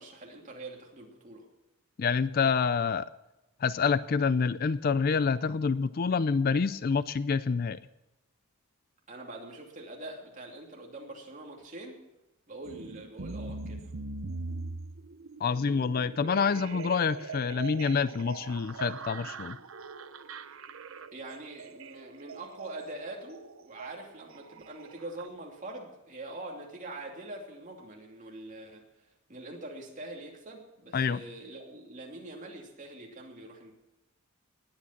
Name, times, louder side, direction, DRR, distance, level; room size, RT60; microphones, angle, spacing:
voice 1, 0.0-1.5 9.1-12.0 12.5-13.9 21.1-28.8 29.3-33.7, right 2 dB, 35° right, 0 dB, 2.7 m, -44 dB
voice 2, 2.0-3.1 3.6-7.8 15.4-19.6 30.9-31.2, left 5 dB, 45° left, 16 dB, 0.4 m, -27 dB
sound 1, 12.6-25.3, right 4 dB, 65° right, 0.7 m, -42 dB
19.5 x 8.7 x 5.9 m, 0.98 s
head